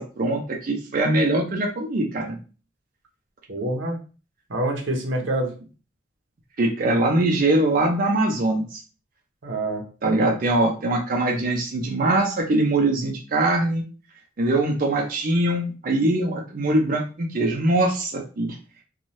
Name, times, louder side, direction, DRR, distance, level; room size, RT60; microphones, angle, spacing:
voice 1, 0.0-2.4 6.6-8.8 10.0-13.8 14.4-18.6, right 2 dB, 50° right, 0 dB, 0.5 m, -22 dB
voice 2, 3.5-4.0 4.5-5.5 9.4-10.5, right 1 dB, 85° right, 1 dB, 0.8 m, -27 dB
3.0 x 2.3 x 2.7 m, 0.36 s
head